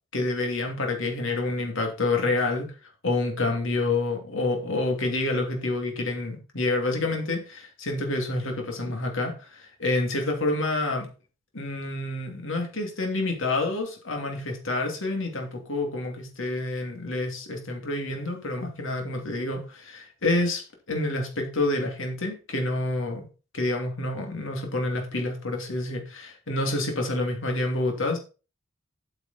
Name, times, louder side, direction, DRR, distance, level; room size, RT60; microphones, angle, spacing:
voice 1, 0.1-2.7 3.0-11.1 11.5-20.6 20.9-23.2 23.5-28.2, left 2 dB, 65° left, 2 dB, 2.8 m, -28 dB
8.5 x 6.9 x 4.3 m, 0.34 s
head